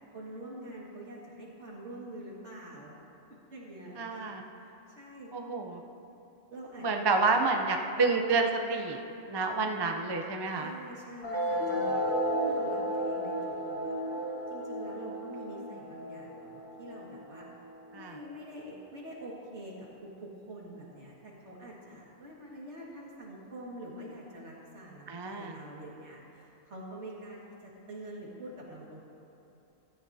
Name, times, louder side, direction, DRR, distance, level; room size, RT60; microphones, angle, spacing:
voice 1, 0.1-3.0 3.5-4.3 5.0-5.3 6.5-7.2 10.6-17.5 17.9-19.7 20.0-29.0, right 1 dB, 55° right, -4 dB, 2.3 m, -46 dB
voice 2, 4.0-4.4 5.3-5.8 6.8-9.0 9.3-10.7 17.9-18.2 25.1-25.5, right 3 dB, 35° right, 3 dB, 0.4 m, -29 dB
sound 1, 11.2-18.2, equal, 65° left, 2.8 m, -33 dB
16.0 x 13.5 x 2.8 m, 2.8 s
omnidirectional pair, 1.4 m